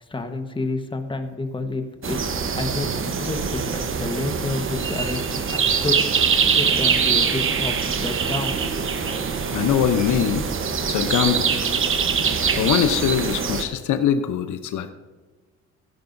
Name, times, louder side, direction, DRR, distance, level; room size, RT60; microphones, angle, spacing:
voice 1, 0.1-2.2 2.6-6.0 6.5-8.6, left 3 dB, 15° left, 6 dB, 1.3 m, -29 dB
sound 1, 2.0-13.6, right 6 dB, 45° right, 1.1 m, -23 dB
voice 2, 9.5-10.5 10.9-11.5 12.5-14.9, left 9 dB, 75° left, 9 dB, 0.9 m, -22 dB
16.0 x 10.5 x 2.7 m, 1.4 s
cardioid pair, 90°, 30 cm